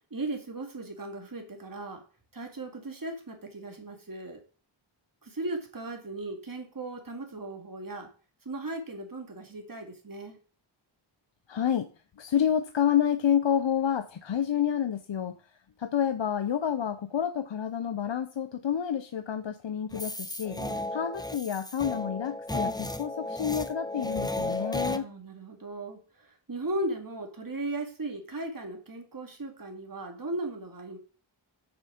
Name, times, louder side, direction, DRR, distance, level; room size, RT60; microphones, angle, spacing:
voice 1, 0.1-2.0 2.3-4.4 5.2-8.1 8.5-10.4 20.5-20.9 24.8-31.0, right 2 dB, 45° right, 2.1 m, -37 dB
voice 2, 11.5-11.9 12.2-15.4 15.8-20.6 20.9-25.1, left 9 dB, 65° left, 0.7 m, -29 dB
sound 1, 19.9-25.0, left 1 dB, 10° left, 0.8 m, -34 dB
6.8 x 6.8 x 5.0 m
wide cardioid pair, 40°, 49 cm